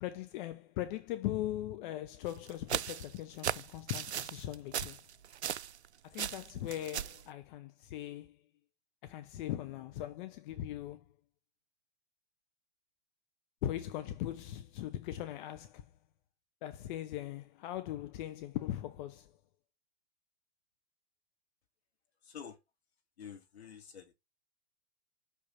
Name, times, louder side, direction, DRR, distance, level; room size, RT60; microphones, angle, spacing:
voice 1, 0.0-5.0 6.0-8.4 9.0-11.0 13.6-15.8 16.6-19.3, left 13 dB, 50° left, 1.0 m, -40 dB
sound 1, 2.3-5.9 6.1-7.2, right 9 dB, 85° right, 0.5 m, -37 dB
voice 2, 22.2-22.6 23.2-24.1, left 7 dB, 75° left, 2.6 m, -48 dB
6.5 x 5.5 x 5.7 m
hypercardioid pair, 105°, 32 cm